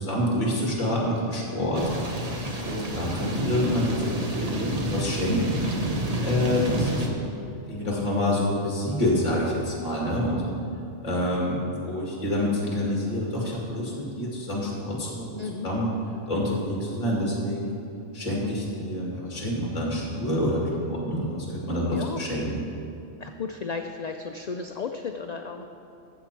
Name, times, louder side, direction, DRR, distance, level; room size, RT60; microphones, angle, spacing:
voice 1, 0.0-1.9 2.6-5.9 6.2-7.2 7.7-10.4 11.0-15.9 16.3-17.7 18.1-22.6, left 1 dB, 30° left, -3 dB, 2.0 m, -27 dB
sound 1, 1.7-7.1, right 1 dB, 35° right, 1.0 m, -29 dB
voice 2, 15.4-15.7 21.9-22.2 23.2-25.7, left 5 dB, 70° left, 5 dB, 0.4 m, -34 dB
14.0 x 7.2 x 4.6 m, 2.6 s
omnidirectional pair, 1.3 m